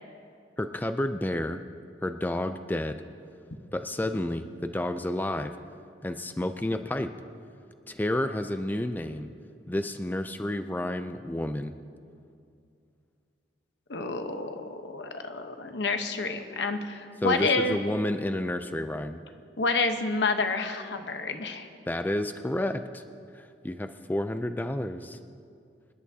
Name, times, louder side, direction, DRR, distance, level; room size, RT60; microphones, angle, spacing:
voice 1, 0.6-1.6 2.0-3.0 3.7-5.5 6.0-7.1 7.9-9.3 9.7-11.7 17.2-19.2 21.9-23.0 23.3-25.2, left 1 dB, 10° left, 8 dB, 0.4 m, -30 dB
voice 2, 13.9-17.8 19.6-21.7, left 3 dB, 80° left, 6 dB, 1.0 m, -29 dB
26.0 x 11.0 x 2.8 m, 2.4 s
head